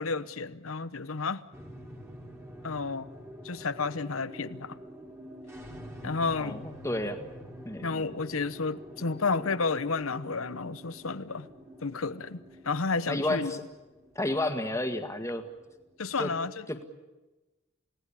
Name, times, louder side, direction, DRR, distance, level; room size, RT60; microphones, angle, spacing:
voice 1, 0.0-1.4 2.6-3.1 3.4-4.8 6.0-6.6 7.8-11.5 11.8-13.6 16.0-16.6, left 4 dB, 80° left, 14 dB, 1.0 m, -31 dB
sound 1, 1.5-16.2, equal, 10° right, 2.9 m, -47 dB
voice 2, 6.4-7.3 7.7-7.9 13.1-13.6 14.2-15.5 16.2-16.3 16.7-16.9, left 1 dB, 15° left, 7 dB, 1.8 m, -31 dB
29.0 x 18.0 x 8.8 m, 1.1 s
head